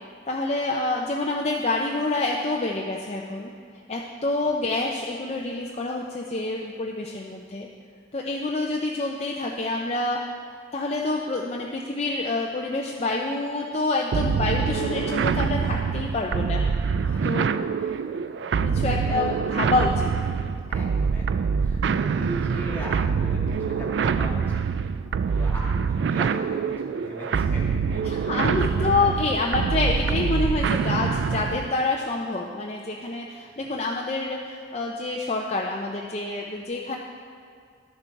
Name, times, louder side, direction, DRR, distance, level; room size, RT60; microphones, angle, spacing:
voice 1, 0.3-3.5 3.9-7.7 8.1-10.4 10.7-16.6 17.2-17.5 18.6-20.1 28.1-37.0, left 2 dB, 35° left, -1 dB, 0.5 m, -27 dB
sound 1, 14.1-31.7, right 6 dB, 75° right, 0.3 m, -25 dB
voice 2, 16.9-19.4 20.7-24.9 25.3-28.5 28.8-29.1 33.4-33.7, equal, 10° left, -5 dB, 1.9 m, -40 dB
11.0 x 6.9 x 4.6 m, 2.3 s
head